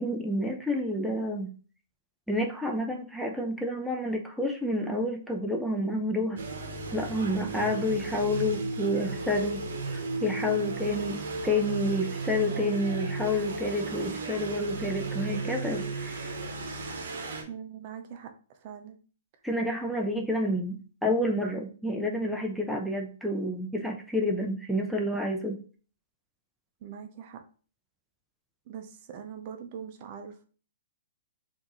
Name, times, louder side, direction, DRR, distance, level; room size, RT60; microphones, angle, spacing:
voice 1, 0.0-1.5 2.3-6.4 6.9-9.6 9.9-11.2 11.4-16.3 19.4-25.6, left 1 dB, ahead, 1 dB, 0.6 m, -29 dB
sound 1, 6.4-17.4, right 3 dB, 70° right, 0.8 m, -35 dB
voice 2, 17.5-18.3 18.6-19.0 26.8-27.4 28.7-30.5, right 8 dB, 45° right, 6 dB, 0.5 m, -42 dB
3.6 x 2.6 x 2.9 m, 0.38 s
hypercardioid pair, 135°, 0 cm